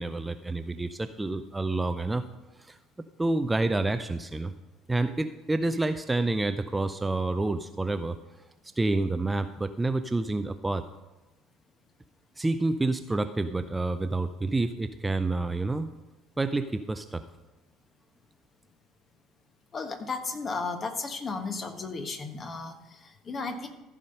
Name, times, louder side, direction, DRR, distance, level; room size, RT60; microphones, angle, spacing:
voice 1, 0.0-2.2 2.6-2.8 3.2-4.5 4.9-8.2 8.8-10.8 12.4-15.9 16.4-17.2, right 2 dB, 15° right, 10 dB, 0.5 m, -28 dB
voice 2, 19.7-23.7, left 4 dB, 35° left, 6 dB, 1.3 m, -34 dB
14.5 x 5.0 x 5.3 m, 1.1 s
figure-of-eight pair, 60°, 0 cm